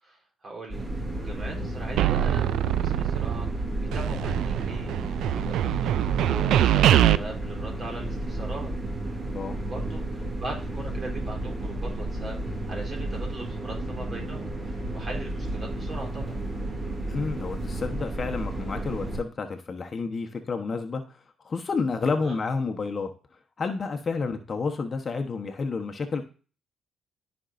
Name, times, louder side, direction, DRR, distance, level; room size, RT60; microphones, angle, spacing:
voice 1, 0.0-0.8 1.2-3.6 3.9-4.9 5.3-8.7 9.6-16.4 22.0-22.4, right 2 dB, 40° right, 0 dB, 3.9 m, -40 dB
sound 1, 0.7-19.2, right 1 dB, 25° right, 2.4 m, -32 dB
sound 2, 2.0-3.6 3.9-7.2, right 12 dB, 80° right, 0.3 m, -23 dB
voice 2, 17.1-21.0 21.4-23.1 23.6-26.2, left 4 dB, 40° left, 5 dB, 1.0 m, -30 dB
13.0 x 5.3 x 2.6 m, 0.37 s
cardioid pair, 90°, 0 cm